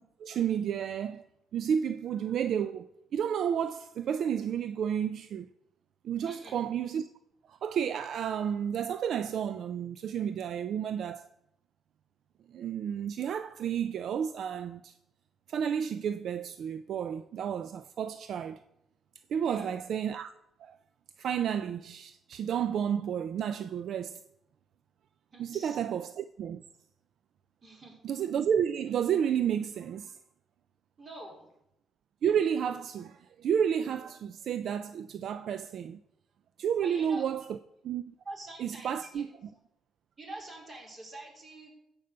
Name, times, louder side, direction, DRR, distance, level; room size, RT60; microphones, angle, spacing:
voice 1, 0.2-1.2 1.5-5.5 6.0-7.1 7.5-11.3 12.5-14.9 15.5-18.6 19.3-20.3 20.6-20.8 21.2-24.2 25.4-26.6 28.0-30.2 32.2-36.0 36.6-37.6 37.8-38.0 38.6-39.3, right 8 dB, 65° right, 0.4 m, -31 dB
voice 2, 6.2-6.6 19.4-19.8 25.3-25.8 27.6-28.0 31.0-31.5 36.8-37.2 38.2-39.3 40.2-41.7, right 2 dB, 35° right, 4.4 m, -45 dB
14.0 x 5.4 x 6.7 m
cardioid pair, 90°, 0 cm